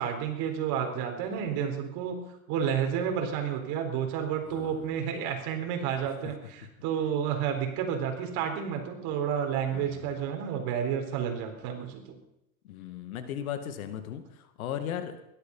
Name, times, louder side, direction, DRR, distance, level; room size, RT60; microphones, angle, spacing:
voice 1, 0.0-12.0, right 8 dB, 55° right, 4 dB, 4.1 m, -31 dB
voice 2, 4.5-4.9 9.7-10.2 12.6-15.3, left 9 dB, 80° left, 8 dB, 2.1 m, -37 dB
17.0 x 12.5 x 5.5 m, 0.88 s
hypercardioid pair, 110°, 42 cm